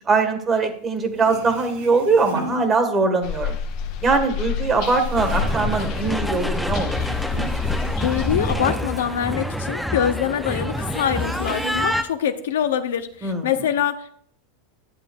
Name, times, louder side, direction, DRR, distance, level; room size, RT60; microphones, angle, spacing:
voice 1, 0.1-3.6 4.0-7.0 13.2-13.7, right 4 dB, 25° right, 7 dB, 1.4 m, -21 dB
sound 1, 0.8-0.9 1.1-3.3 3.7-6.6 6.9-9.9 10.2-10.3 10.7-12.2 12.6-13.3, right 2 dB, 85° right, 1.8 m, -38 dB
sound 2, 3.2-8.5, left 6 dB, 60° left, 1.0 m, -28 dB
sound 3, 5.2-12.0, left 1 dB, ahead, 0.5 m, -27 dB
voice 2, 8.0-14.1, left 9 dB, 80° left, 9 dB, 0.7 m, -24 dB
11.0 x 7.5 x 2.4 m, 0.62 s
hypercardioid pair, 115°, 0 cm